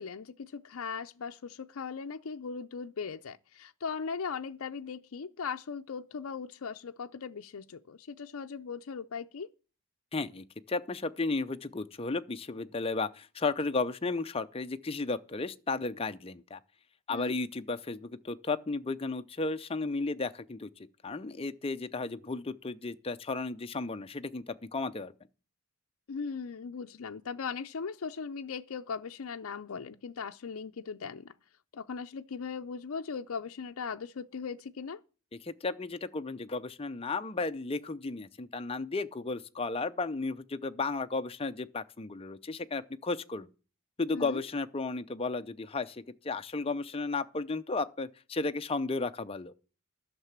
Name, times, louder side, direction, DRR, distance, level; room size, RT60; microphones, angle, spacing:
voice 1, 0.0-9.5 17.1-17.4 26.1-31.3 31.7-35.0 44.1-44.4, left 5 dB, 70° left, 0.5 m, -39 dB
voice 2, 10.1-16.6 17.1-20.7 21.0-25.1 35.3-43.5 44.0-49.5, left 3 dB, 25° left, 0.6 m, -34 dB
11.5 x 6.7 x 7.2 m
head